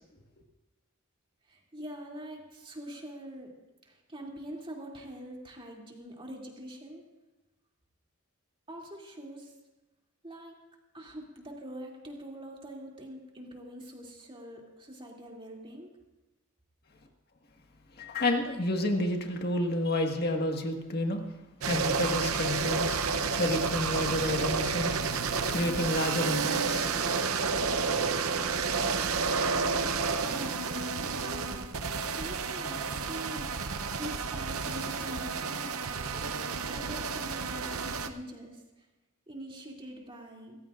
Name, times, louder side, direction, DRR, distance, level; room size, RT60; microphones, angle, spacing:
voice 1, 1.5-3.5 3.9-7.0 8.7-9.5 10.2-10.6 10.9-15.9 30.2-30.8 31.2-31.7 32.1-33.5 34.0-38.6 39.3-40.6, right 1 dB, 25° right, -1 dB, 2.7 m, -44 dB
voice 2, 18.0-21.2 21.6-23.0 23.4-27.2, left 1 dB, 50° left, 3 dB, 1.7 m, -30 dB
sound 1, 21.6-38.1, right 5 dB, 75° right, 0.8 m, -30 dB
26.5 x 14.5 x 2.5 m, 1.1 s
head